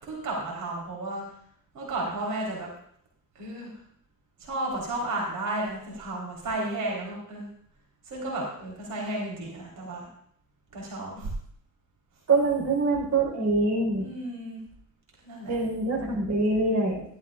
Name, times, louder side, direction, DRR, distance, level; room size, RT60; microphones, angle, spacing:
voice 1, 0.0-1.2 1.7-2.7 3.3-3.7 4.4-7.5 8.1-10.1 10.7-11.3 14.0-14.6 15.2-15.6, right 2 dB, 75° right, -2 dB, 4.1 m, -33 dB
voice 2, 12.3-14.1 15.5-17.0, right 3 dB, 60° right, -1 dB, 4.4 m, -24 dB
15.5 x 13.0 x 2.5 m, 0.64 s
cardioid pair, 105°, 32 cm